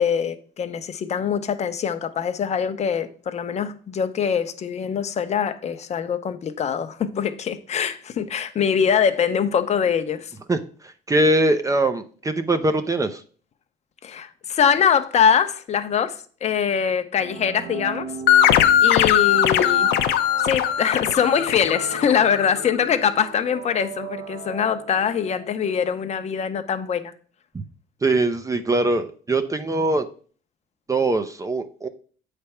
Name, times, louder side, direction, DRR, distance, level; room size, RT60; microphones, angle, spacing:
voice 1, 0.0-10.3 14.0-18.1 18.8-19.9 20.4-27.1, left 7 dB, 40° left, 0.7 m, -23 dB
voice 2, 10.5-13.2 27.5-27.6 28.0-30.1 30.9-31.9, right 2 dB, 20° right, 0.5 m, -22 dB
sound 1, 17.1-25.8, right 5 dB, 75° right, 0.8 m, -37 dB
sound 2, 18.3-22.6, left 11 dB, 85° left, 0.6 m, -19 dB
8.1 x 3.3 x 5.7 m
cardioid pair, 110°, 17 cm